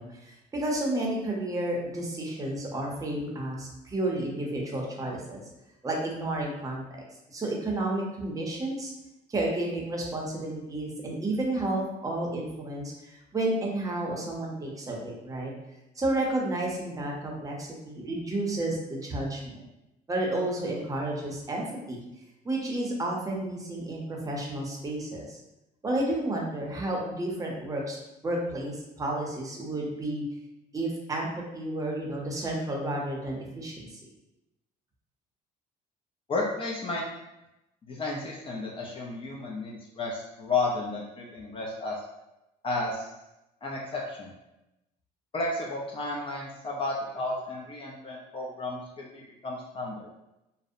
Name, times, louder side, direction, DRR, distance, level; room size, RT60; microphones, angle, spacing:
voice 1, 0.0-5.4 5.8-6.8 7.3-8.9 9.3-15.5 16.0-19.6 20.1-22.0 22.4-25.4 25.8-28.0 28.2-30.2 30.7-34.0, right 1 dB, 20° right, -1 dB, 0.6 m, -31 dB
voice 2, 36.3-37.0 37.8-42.0 42.6-43.1 43.6-44.3 45.3-50.1, left 2 dB, 35° left, -3 dB, 0.4 m, -32 dB
2.6 x 2.0 x 2.5 m, 0.93 s
cardioid pair, 110°, 17 cm